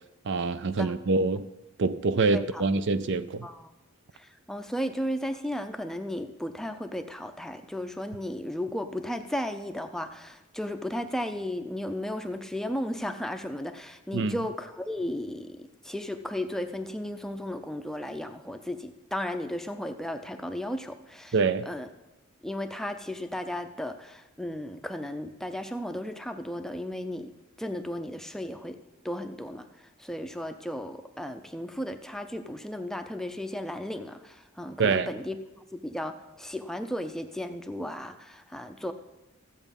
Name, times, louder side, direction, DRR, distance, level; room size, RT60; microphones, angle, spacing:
voice 1, 0.3-1.5 1.8-3.5 14.1-14.4 21.3-21.7 34.8-35.1, right 4 dB, 55° right, 0.5 m, -25 dB
voice 2, 2.3-2.6 3.4-3.7 4.1-21.3 21.7-21.9 22.4-27.3 27.6-28.8 29.0-29.7 30.0-38.9, left 1 dB, ahead, 0.5 m, -35 dB
14.5 x 8.1 x 5.3 m
head